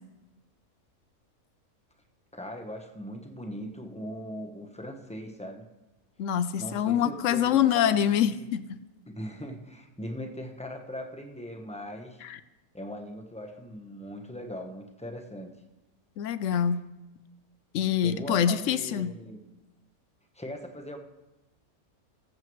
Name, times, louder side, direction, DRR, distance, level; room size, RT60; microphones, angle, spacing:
voice 1, 2.3-5.6 6.6-8.5 9.1-12.2 12.7-15.5 18.0-19.4 20.3-21.0, equal, 5° left, 2 dB, 0.8 m, -40 dB
voice 2, 6.2-8.6 12.2-12.4 16.2-16.8 17.7-19.1, left 9 dB, 70° left, 14 dB, 0.8 m, -25 dB
20.5 x 7.6 x 3.1 m, 1.0 s
omnidirectional pair, 1.5 m